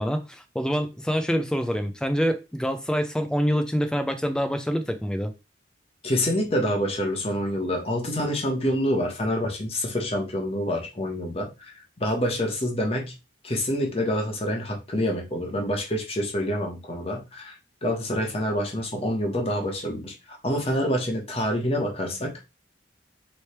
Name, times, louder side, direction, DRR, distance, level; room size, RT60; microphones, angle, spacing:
voice 1, 0.0-5.3, equal, 5° left, 0.5 m, -26 dB
voice 2, 6.0-11.7 12.0-13.1 13.4-17.5 17.8-22.4, equal, 30° left, 1.1 m, -27 dB
3.3 x 3.1 x 4.3 m
head